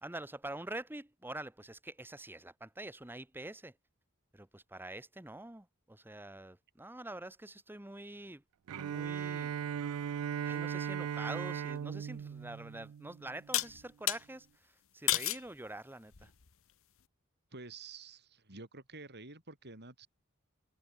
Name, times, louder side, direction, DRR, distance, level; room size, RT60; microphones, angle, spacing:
voice 1, 0.0-3.7 4.3-8.4 8.7-9.5 10.4-16.3, right 1 dB, 10° right, 1.1 m, -46 dB
Bowed string instrument, 8.7-13.6, right 8 dB, 70° right, 0.4 m, -38 dB
sound 1, 12.2-12.3 13.5-14.2 15.1-15.5 16.1-16.5, left 15 dB, 65° left, 1.0 m, -32 dB
voice 2, 17.5-20.1, right 3 dB, 50° right, 6.2 m, -49 dB
head